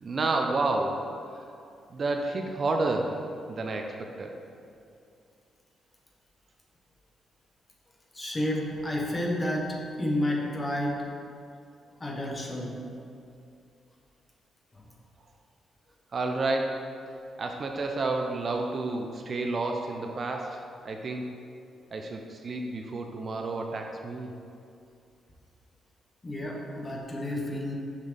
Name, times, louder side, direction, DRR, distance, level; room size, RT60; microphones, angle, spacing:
voice 1, 0.0-1.0 1.9-3.2 3.5-4.3 16.1-16.9 17.4-21.2 21.9-24.3, right 2 dB, 40° right, 3 dB, 0.5 m, -30 dB
voice 2, 8.1-11.1 12.0-12.7 14.7-14.8 26.2-27.7, left 1 dB, 20° left, -1 dB, 1.0 m, -30 dB
6.3 x 5.6 x 3.5 m, 2.4 s
cardioid pair, 125°, 0 cm